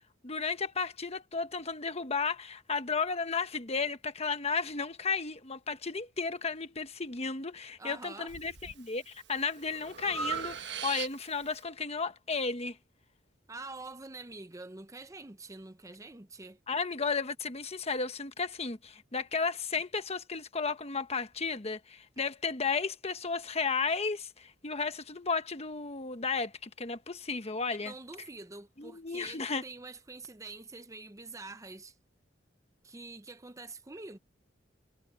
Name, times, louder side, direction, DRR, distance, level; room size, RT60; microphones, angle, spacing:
voice 1, 0.2-12.8 16.7-27.9 28.8-29.6, left 4 dB, 35° left, 1.2 m, -33 dB
voice 2, 7.8-8.3 13.5-16.6 27.8-32.0 32.8-34.2, right 3 dB, 15° right, 0.7 m, -46 dB
Breathing, 8.3-8.8 9.3-11.5, right 6 dB, 65° right, 1.3 m, -38 dB
head